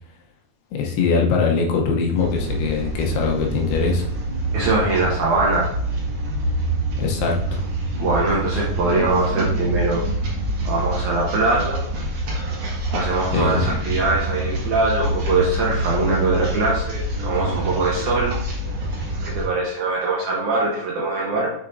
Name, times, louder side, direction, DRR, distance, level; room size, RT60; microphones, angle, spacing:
voice 1, 0.7-4.1 7.0-7.6 13.3-13.6, left 5 dB, 80° left, 0 dB, 2.8 m, -22 dB
sound 1, 2.2-19.5, right 1 dB, 50° right, 2.0 m, -26 dB
voice 2, 4.5-5.7 8.0-10.1 10.6-11.8 12.9-18.4 19.3-21.5, right 3 dB, 65° right, -4 dB, 2.1 m, -22 dB
7.0 x 6.0 x 2.6 m, 0.70 s
omnidirectional pair, 4.6 m